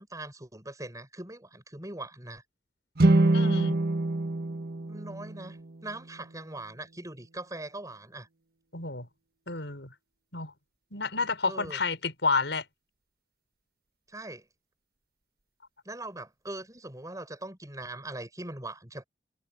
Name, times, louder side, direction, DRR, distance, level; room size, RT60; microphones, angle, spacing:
voice 1, 0.0-2.4 4.9-8.3 11.4-11.8 14.1-14.5 15.8-19.0, right 2 dB, 20° right, 7.4 m, -41 dB
sound 1, 2.9-6.2, right 2 dB, 60° right, 1.6 m, -25 dB
voice 2, 3.3-3.8 8.7-9.1 9.5-9.9 10.3-10.5 10.9-12.6, left 4 dB, 90° left, 5.6 m, -30 dB
head